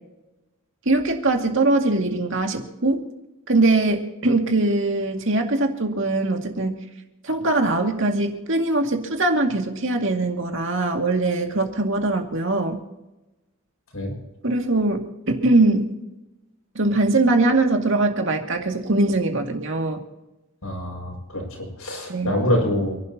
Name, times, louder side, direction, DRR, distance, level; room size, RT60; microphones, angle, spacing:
voice 1, 0.9-3.0 3.5-6.8 7.2-12.8 14.4-15.9 16.7-20.0 22.1-22.3, right 2 dB, 60° right, 3 dB, 2.2 m, -21 dB
voice 2, 20.6-23.0, left 1 dB, 85° left, 0 dB, 6.7 m, -25 dB
28.5 x 12.0 x 2.9 m, 1.0 s
head